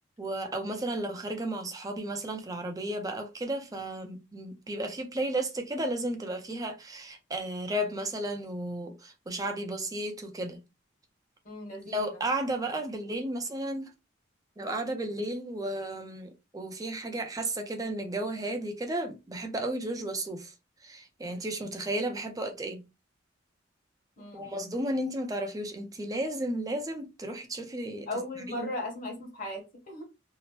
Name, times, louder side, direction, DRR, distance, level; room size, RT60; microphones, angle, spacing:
voice 1, 0.2-10.6 11.9-13.9 14.6-20.5 20.8-22.8 24.3-28.1 28.4-28.7, right 1 dB, 20° right, 0.5 m, -33 dB
voice 2, 11.4-12.0 24.2-24.6 28.1-30.0, left 1 dB, 45° left, 1.2 m, -37 dB
2.8 x 2.0 x 3.0 m
head